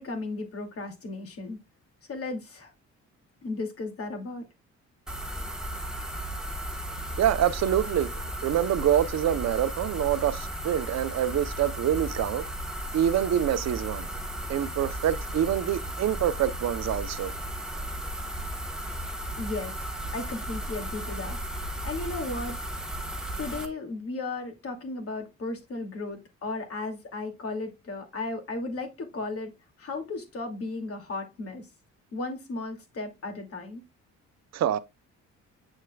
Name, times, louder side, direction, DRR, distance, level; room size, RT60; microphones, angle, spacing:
voice 1, 0.0-1.6 2.1-2.7 3.4-4.4 19.4-19.8 20.1-21.4 21.8-22.7 23.4-29.5 29.8-31.7 32.1-33.8, left 3 dB, 50° left, 2.5 m, -35 dB
sound 1, 5.1-23.7, right 1 dB, ahead, 1.3 m, -35 dB
voice 2, 7.2-8.1 8.4-12.4 12.9-14.1 14.5-17.3 34.5-34.8, right 10 dB, 60° right, 0.8 m, -26 dB
8.2 x 6.5 x 2.3 m
cardioid pair, 90°, 30 cm